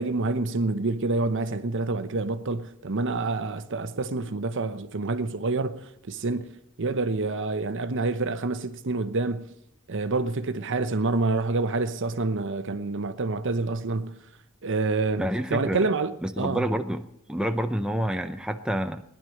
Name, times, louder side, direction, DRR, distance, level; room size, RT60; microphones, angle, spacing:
voice 1, 0.0-6.5 6.8-9.5 9.9-14.2 14.6-16.6, right 3 dB, 60° right, 0.8 m, -27 dB
voice 2, 15.2-15.9 16.2-19.0, right 1 dB, 5° right, 0.6 m, -28 dB
18.0 x 11.0 x 6.4 m
head